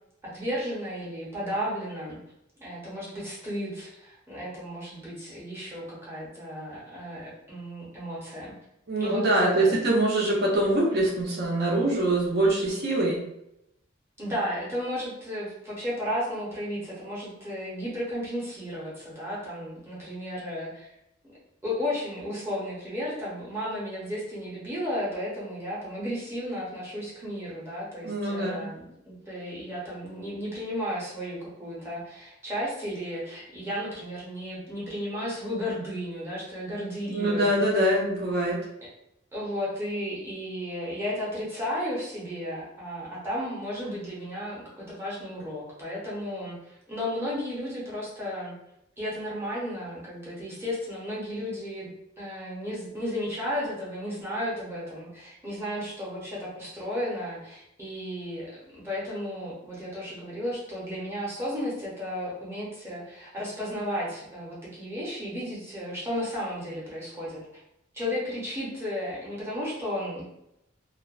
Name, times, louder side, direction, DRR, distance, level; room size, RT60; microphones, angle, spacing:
voice 1, 0.2-2.2 2.6-8.5 9.0-9.7 14.2-20.9 21.6-37.6 39.3-48.5 49.0-51.9 52.2-67.4 67.9-70.3, equal, 15° right, -7 dB, 0.8 m, -34 dB
voice 2, 8.9-13.2 28.0-28.6 37.1-38.6, right 1 dB, 55° right, -3 dB, 0.7 m, -24 dB
2.4 x 2.1 x 2.4 m, 0.81 s
head